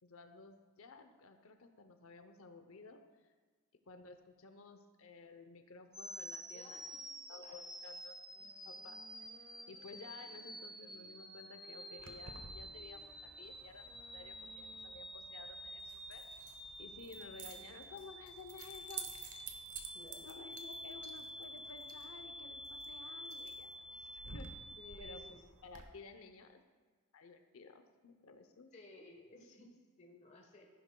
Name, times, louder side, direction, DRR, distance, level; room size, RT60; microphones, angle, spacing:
voice 1, 0.0-3.0 3.9-7.0 7.3-8.1 8.4-9.0 9.7-16.2 16.8-19.1 20.2-24.5 25.0-26.6 27.1-28.7, left 3 dB, 70° left, 7 dB, 0.7 m, -54 dB
sound 1, 5.9-25.3, equal, ahead, 0.5 m, -50 dB
voice 2, 6.5-7.0 7.3-7.6 17.0-17.1 19.9-20.3 24.8-25.4 28.7-30.7, left 1 dB, 30° left, 1 dB, 1.2 m, -57 dB
sound 2, 8.3-16.3, equal, 50° right, 2.4 m, -65 dB
Keys jangling, 12.0-25.8, right 5 dB, 75° right, 1.0 m, -53 dB
14.0 x 10.5 x 2.3 m, 1.5 s
head